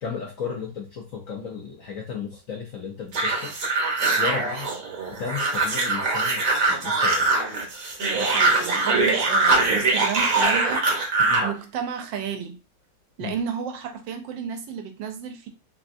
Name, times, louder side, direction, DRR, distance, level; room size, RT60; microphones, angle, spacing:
voice 1, 0.0-3.5 4.2-4.7 5.1-7.3 11.2-11.4 13.2-13.4, left 6 dB, 65° left, -1 dB, 0.8 m, -34 dB
sound 1, 3.1-11.5, right 3 dB, 55° right, 1.2 m, -22 dB
voice 2, 8.1-10.9 11.4-12.6 13.2-15.5, right 7 dB, 80° right, 5 dB, 1.3 m, -32 dB
3.5 x 2.5 x 2.4 m, 0.30 s
omnidirectional pair, 2.0 m